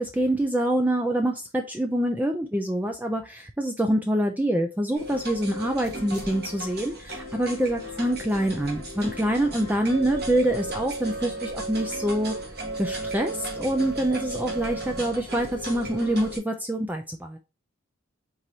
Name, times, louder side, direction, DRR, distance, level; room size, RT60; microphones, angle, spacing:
voice 1, 0.0-12.3 12.8-17.4, right 1 dB, 10° right, 4 dB, 0.3 m, -26 dB
sound 1, 4.9-16.4, right 1 dB, 50° right, 1.7 m, -35 dB
4.7 x 3.9 x 2.8 m, 0.28 s
head